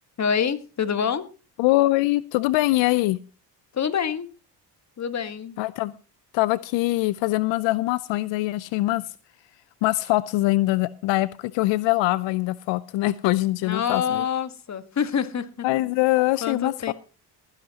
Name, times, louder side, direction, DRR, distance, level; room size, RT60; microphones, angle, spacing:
voice 1, 0.2-1.2 3.7-4.3 5.0-5.6 13.6-15.7 16.4-16.9, left 7 dB, 35° left, 11 dB, 1.5 m, -26 dB
voice 2, 1.6-3.2 5.6-5.9 6.3-9.0 9.8-14.2 15.6-16.9, left 18 dB, 75° left, 17 dB, 0.6 m, -23 dB
19.0 x 10.5 x 2.9 m, 0.34 s
cardioid pair, 90°, 45 cm